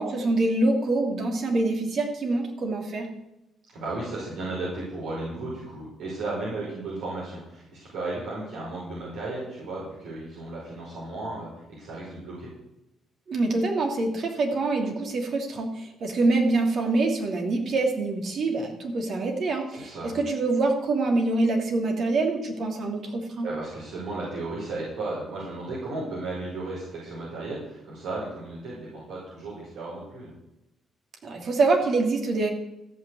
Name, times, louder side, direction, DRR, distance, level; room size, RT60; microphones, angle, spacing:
voice 1, 0.0-3.1 13.3-23.5 31.2-32.5, right 2 dB, 60° right, 2 dB, 2.8 m, -25 dB
voice 2, 3.7-11.5 11.8-12.5 19.7-20.1 23.4-30.3, right 2 dB, 80° right, -6 dB, 5.3 m, -34 dB
14.0 x 6.1 x 8.3 m, 0.89 s
cardioid pair, 90°, 0 cm